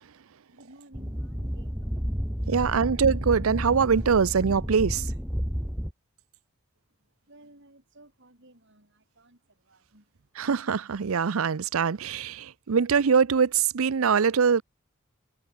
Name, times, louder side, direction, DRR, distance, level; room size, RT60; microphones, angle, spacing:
voice 1, 0.5-2.2 7.3-10.1, right 1 dB, 60° right, 7.0 m, -55 dB
sound 1, 0.9-5.9, equal, 5° right, 2.3 m, -31 dB
voice 2, 2.5-5.0 10.4-14.6, right 6 dB, 80° right, 0.6 m, -23 dB
head